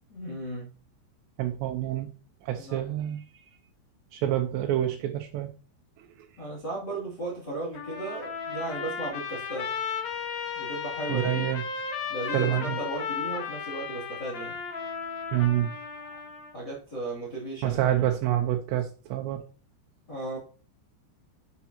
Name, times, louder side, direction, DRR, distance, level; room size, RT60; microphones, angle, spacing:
voice 1, 0.1-0.7 2.5-2.8 6.4-9.7 10.6-11.5 12.1-14.5 16.5-17.8 20.1-20.4, right 2 dB, 25° left, -4 dB, 2.8 m, -35 dB
voice 2, 1.4-2.1 2.4-3.2 4.1-5.5 11.1-11.6 12.3-12.8 15.3-15.7 17.6-19.4, right 12 dB, 80° right, 2 dB, 3.1 m, -27 dB
Trumpet, 7.7-16.6, left 6 dB, 60° left, 1.9 m, -35 dB
10.5 x 8.3 x 2.9 m, 0.37 s
omnidirectional pair, 5.1 m